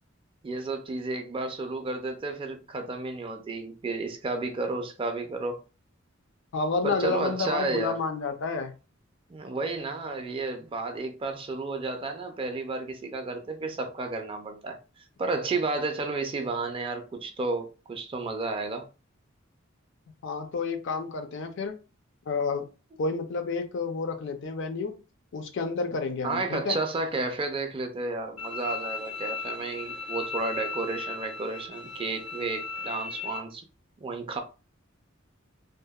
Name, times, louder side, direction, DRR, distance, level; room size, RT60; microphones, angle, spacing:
voice 1, 0.4-5.6 6.8-8.0 9.3-18.9 26.2-33.6 34.0-34.4, right 3 dB, 25° right, 0.4 m, -32 dB
voice 2, 6.5-8.7 20.2-21.8 22.3-22.7 23.0-25.0 25.3-26.8, left 4 dB, 65° left, 0.4 m, -30 dB
Bowed string instrument, 28.4-33.4, left 4 dB, 90° left, 1.0 m, -36 dB
2.7 x 2.0 x 2.2 m
head